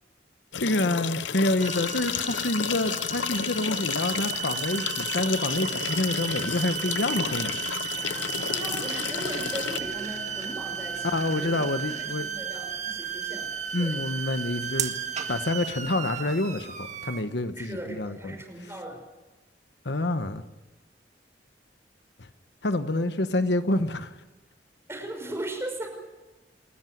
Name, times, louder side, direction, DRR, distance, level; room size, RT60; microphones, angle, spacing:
sound 1, 0.5-9.8, left 8 dB, 90° left, 0.7 m, -32 dB
voice 1, 0.6-7.6 11.0-12.3 13.7-14.9 15.3-18.4 19.8-20.4 22.2-22.3 22.6-24.1, left 2 dB, 70° left, 1.1 m, -27 dB
sound 2, 1.6-17.2, right 7 dB, 40° right, 1.8 m, -34 dB
sound 3, 7.9-11.9, left 2 dB, 25° left, 1.1 m, -47 dB
voice 2, 8.4-11.6 12.0-14.0 17.6-19.0 24.9-25.9, right 1 dB, 15° right, 5.5 m, -38 dB
28.5 x 14.0 x 9.3 m
head